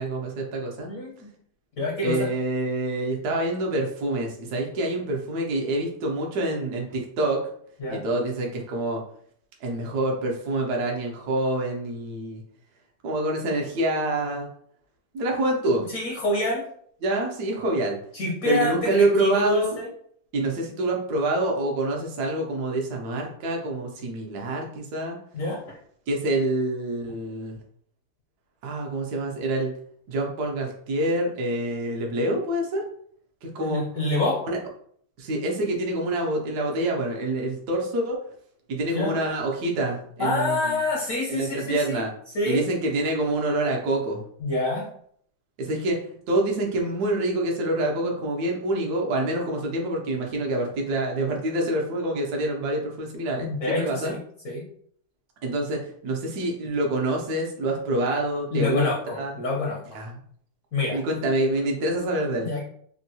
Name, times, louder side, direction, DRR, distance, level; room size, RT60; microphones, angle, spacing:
voice 1, 0.0-0.9 2.0-7.4 7.9-9.0 9.6-12.4 13.0-14.5 15.1-15.8 17.0-18.0 18.4-19.8 20.3-25.2 26.1-27.6 28.6-29.7 30.1-32.9 33.5-33.8 34.4-34.6 35.2-38.2 38.7-40.7 41.3-42.1 42.4-44.2 45.6-54.1 55.4-59.3 59.9-60.1 60.9-62.5, right 1 dB, 65° right, 0 dB, 1.0 m, -26 dB
voice 2, 0.9-1.3 1.8-2.3 7.8-8.0 15.9-16.6 18.1-19.9 25.3-25.6 33.6-34.4 38.9-39.2 40.2-42.0 42.3-42.6 44.4-44.9 53.4-54.2 54.4-54.6 58.5-59.8 60.7-61.0 62.4-62.6, left 2 dB, 65° left, -4 dB, 0.8 m, -27 dB
3.6 x 2.2 x 2.7 m, 0.62 s
omnidirectional pair, 2.3 m